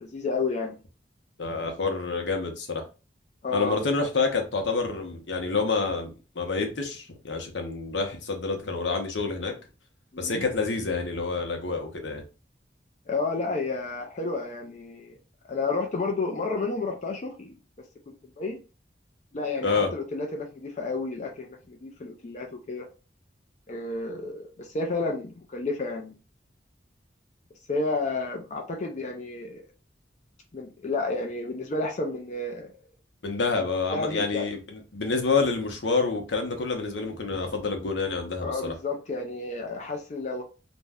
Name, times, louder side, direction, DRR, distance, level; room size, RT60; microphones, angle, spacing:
voice 1, 0.0-0.8 3.4-3.8 10.1-10.4 13.1-15.2 15.5-17.5 18.1-18.6 19.3-22.9 23.7-26.1 27.7-29.6 30.5-32.7 33.9-34.4 38.4-40.4, left 3 dB, 40° left, 0.4 m, -31 dB
voice 2, 1.4-2.8 3.5-9.5 10.2-12.2 19.6-19.9 33.2-38.7, left 4 dB, 85° left, 0.7 m, -28 dB
2.5 x 2.1 x 3.4 m
head